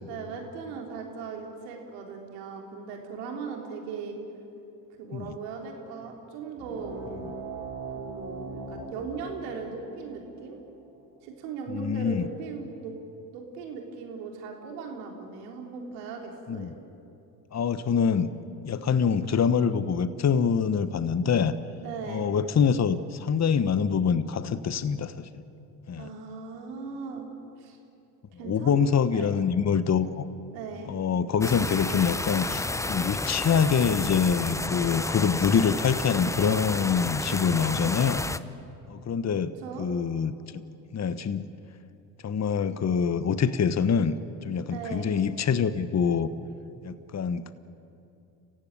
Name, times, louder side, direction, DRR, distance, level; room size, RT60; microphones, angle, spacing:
voice 1, 0.0-4.2 5.0-7.1 7.9-10.6 11.2-13.0 13.3-16.8 21.8-22.3 26.0-27.3 27.6-27.8 28.4-28.8 29.1-29.3 30.5-31.0 39.6-39.9 44.7-45.1, right 5 dB, 85° right, 2 dB, 3.8 m, -38 dB
sound 1, 6.6-11.7, right 3 dB, 65° right, 6.1 m, -41 dB
voice 2, 11.7-12.3 16.5-16.7 17.5-18.3 18.6-21.5 22.1-25.4 25.9-26.1 28.4-30.3 30.9-38.2 38.9-40.6 40.9-41.5 42.2-44.2 44.4-46.3 46.8-47.5, left 6 dB, 35° left, 13 dB, 1.2 m, -25 dB
sound 2, 31.4-38.4, left 2 dB, 5° left, 0.7 m, -31 dB
28.0 x 15.5 x 9.8 m, 2.7 s
hypercardioid pair, 65°, 46 cm